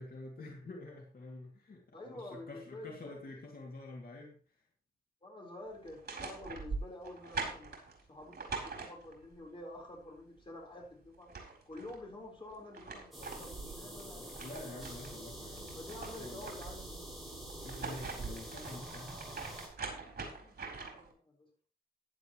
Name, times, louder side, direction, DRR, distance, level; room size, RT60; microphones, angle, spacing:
voice 1, 0.0-4.4 14.1-15.9 16.2-16.5 17.5-19.2, left 2 dB, 65° left, -1 dB, 2.6 m, -48 dB
voice 2, 1.9-3.4 5.2-7.7 8.1-11.3 11.7-14.5 15.8-17.0 20.3-21.5, left 2 dB, 35° left, -1 dB, 4.3 m, -49 dB
sound 1, 5.8-9.4 10.8-10.9 11.1-12.0 12.5-15.2 15.6-16.9 17.5-21.1, right 4 dB, 80° right, 4.2 m, -43 dB
sound 2, 13.1-19.7, right 1 dB, ahead, 6.1 m, -46 dB
15.0 x 10.5 x 3.2 m, 0.39 s
wide cardioid pair, 155°, 16 cm